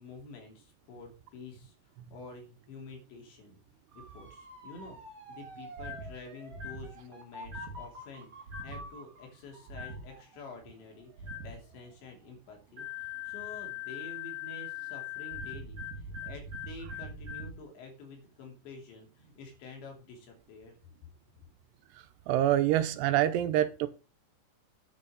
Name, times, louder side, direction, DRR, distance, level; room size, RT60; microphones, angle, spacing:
voice 1, 0.0-1.7 2.1-3.6 4.0-5.0 5.3-20.8, left 3 dB, 85° left, 5.3 m, -49 dB
Motor vehicle (road) / Siren, 3.9-12.8 13.2-13.7, right 1 dB, 20° right, 4.0 m, -50 dB
sound 1, 5.8-6.1 6.5-6.9 7.4-7.8 8.5-8.8 9.7-10.0 11.2-11.5 12.8-17.5, left 5 dB, 50° right, 3.6 m, -40 dB
voice 2, 22.3-23.9, right 12 dB, 80° right, 2.8 m, -26 dB
9.4 x 6.8 x 5.2 m
omnidirectional pair, 5.1 m